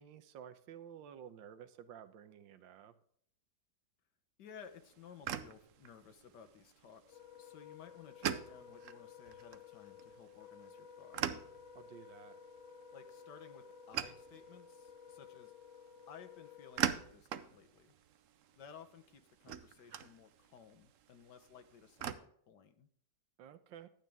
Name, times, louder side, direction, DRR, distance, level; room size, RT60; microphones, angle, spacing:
voice 1, 0.0-2.9 11.7-12.4 23.4-23.9, right 9 dB, 85° right, 12 dB, 1.6 m, -53 dB
voice 2, 4.4-11.3 12.9-17.9 18.6-22.9, left 7 dB, 65° left, 7 dB, 1.7 m, -57 dB
sound 1, 4.6-22.1, right 9 dB, 65° right, 0.8 m, -44 dB
Wind instrument woodwind instrument, 7.0-17.1, left 7 dB, 85° left, 1.9 m, -55 dB
12.0 x 9.1 x 3.5 m, 0.63 s
omnidirectional pair, 2.0 m